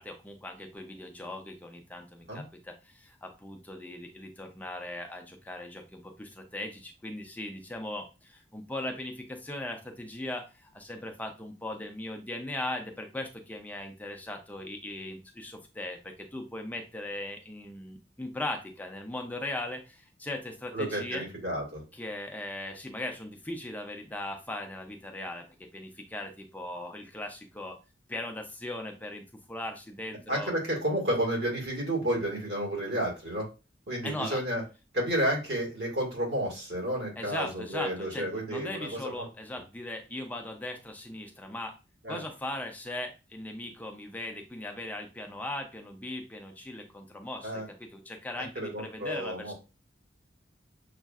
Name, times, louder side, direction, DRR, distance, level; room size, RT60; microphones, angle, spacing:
voice 1, 0.0-21.2 21.9-25.5 25.7-27.8 28.1-30.5 34.0-34.4 37.2-41.8 42.1-49.5, left 1 dB, 10° left, 3 dB, 0.5 m, -39 dB
voice 2, 20.7-21.8 30.3-33.5 33.9-34.6 34.9-39.3 42.0-42.2 47.4-47.7 48.6-49.5, right 1 dB, 75° right, -2 dB, 1.9 m, -31 dB
6.3 x 2.5 x 2.3 m, 0.30 s
head